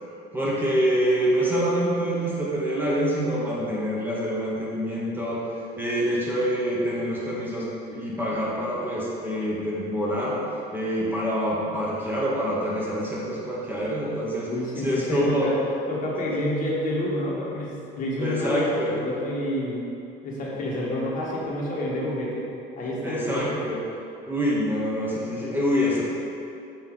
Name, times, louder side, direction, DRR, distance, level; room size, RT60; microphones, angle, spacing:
voice 1, 0.3-5.4 5.8-10.4 10.7-14.5 14.8-15.5 18.2-19.0 23.0-23.8 24.3-26.0, equal, 10° right, -6 dB, 1.0 m, -26 dB
voice 2, 14.5-15.5 15.9-19.8 20.2-22.4 22.8-23.4, left 1 dB, 45° left, -4 dB, 1.5 m, -28 dB
6.0 x 5.5 x 3.9 m, 2.7 s
cardioid pair, 140°, 19 cm